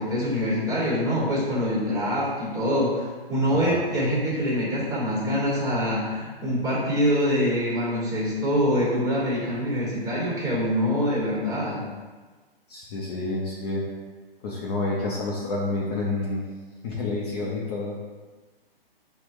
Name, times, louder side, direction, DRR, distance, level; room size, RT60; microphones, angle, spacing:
voice 1, 0.0-11.8, equal, 10° right, -6 dB, 1.3 m, -25 dB
voice 2, 12.7-13.8 14.4-16.4 16.8-17.9, left 2 dB, 45° left, -5 dB, 0.7 m, -29 dB
5.9 x 2.2 x 3.1 m, 1.3 s
hypercardioid pair, 130°, 30 cm